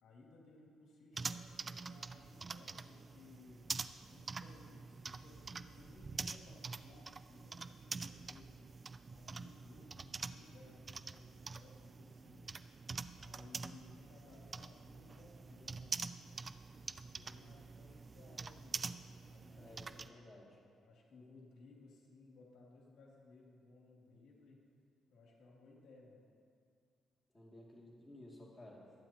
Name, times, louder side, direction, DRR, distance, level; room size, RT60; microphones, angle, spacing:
voice 1, 0.0-3.6 4.1-8.7 9.1-12.5 13.2-16.0 17.1-19.0 19.2-20.2 20.8-24.6 25.1-26.2, left 3 dB, 75° left, -3 dB, 2.7 m, -61 dB
sound 1, 1.1-20.1, right 4 dB, 35° right, 0.4 m, -46 dB
voice 2, 19.6-20.5 27.3-28.9, left 1 dB, 15° left, -4 dB, 2.6 m, -55 dB
24.0 x 9.1 x 3.0 m, 2.3 s
cardioid pair, 90°, 0 cm